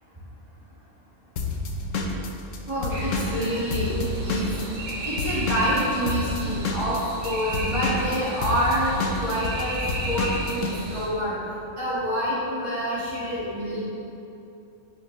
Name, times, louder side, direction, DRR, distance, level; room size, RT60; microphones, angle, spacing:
Drum kit / Drum, 1.4-4.9 5.2-10.7, left 3 dB, 85° left, 1.2 m, -29 dB
voice 1, 2.7-4.5 5.1-11.3 11.7-13.8, equal, 25° right, -11 dB, 2.0 m, -27 dB
sound 1, 2.9-11.1, right 2 dB, 70° right, 1.6 m, -35 dB
10.5 x 8.7 x 3.2 m, 2.8 s
omnidirectional pair, 1.3 m